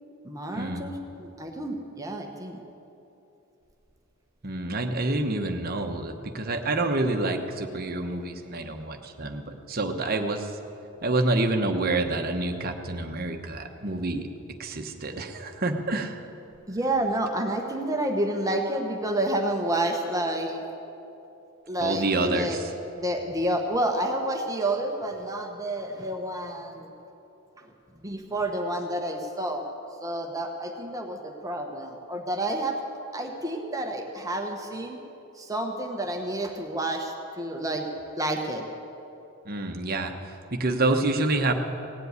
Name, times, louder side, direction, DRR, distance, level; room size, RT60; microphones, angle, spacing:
voice 1, 0.2-2.6 16.7-20.7 21.7-22.6 22.9-26.9 27.6-29.7 30.0-32.8 33.1-35.0 35.3-37.9 38.2-38.6, right 1 dB, 15° right, 3 dB, 1.0 m, -29 dB
voice 2, 4.4-10.5 11.0-14.3 14.6-16.2 21.8-22.6 39.4-41.5, right 2 dB, 40° right, 5 dB, 1.1 m, -27 dB
17.5 x 7.8 x 9.5 m, 2.9 s
head